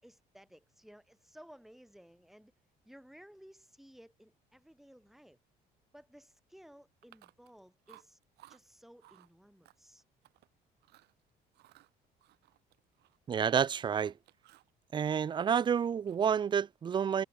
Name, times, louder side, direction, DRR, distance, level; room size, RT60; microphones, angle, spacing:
voice 1, 0.0-2.5 2.8-5.4 5.9-8.2 8.5-10.0, equal, ahead, 6.0 m, -57 dB
Chewing mastication, 7.0-7.6 7.9-8.6 9.0-9.3 9.6-10.5 10.8-11.1 11.5-13.2 13.4-14.7 15.0-16.4, right 16 dB, 80° right, 6.0 m, -61 dB
voice 2, 13.3-14.1 14.9-17.2, right 7 dB, 30° right, 0.4 m, -29 dB
cardioid pair, 110°, 17 cm